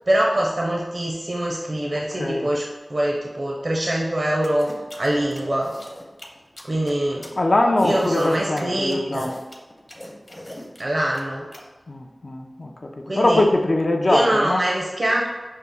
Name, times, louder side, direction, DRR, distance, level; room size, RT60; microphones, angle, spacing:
voice 1, 0.1-4.7 5.0-5.7 6.6-7.3 7.8-9.3 10.8-11.5 13.1-13.4 14.1-15.3, right 1 dB, 60° right, -2 dB, 0.5 m, -24 dB
sound 1, 4.4-11.6, left 1 dB, 35° left, 0.8 m, -40 dB
voice 2, 7.4-9.4 11.9-12.9 13.2-14.6, left 2 dB, 60° left, 3 dB, 0.4 m, -21 dB
5.3 x 2.0 x 3.5 m, 1.2 s
wide cardioid pair, 45°, 0 cm